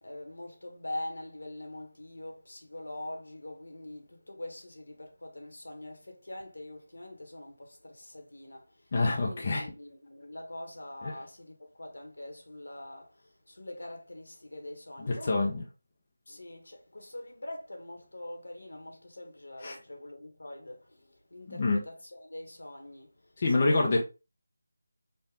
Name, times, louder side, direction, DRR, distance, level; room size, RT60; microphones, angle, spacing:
voice 1, 0.0-15.5 16.3-23.1 23.7-24.0, left 1 dB, 85° left, 1.7 m, -44 dB
voice 2, 8.9-9.7 11.0-11.1 15.0-15.6 19.6-19.8 21.5-21.8 23.4-24.0, left 3 dB, 35° left, 0.8 m, -26 dB
4.5 x 2.6 x 3.6 m
figure-of-eight pair, 170°, 0 cm